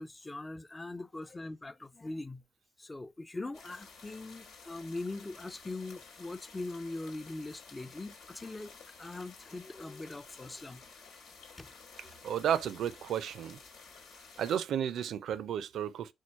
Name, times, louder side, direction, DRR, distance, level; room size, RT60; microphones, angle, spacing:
voice 1, 0.0-2.4 2.8-10.8 11.6-11.7 12.0-12.2, left 2 dB, 20° left, 0.4 m, -42 dB
sound 1, 3.5-14.6, left 4 dB, 90° left, 1.4 m, -53 dB
voice 2, 12.2-13.6 14.4-16.1, right 9 dB, 70° right, 0.4 m, -32 dB
4.6 x 2.2 x 4.4 m
cardioid pair, 90°, 0 cm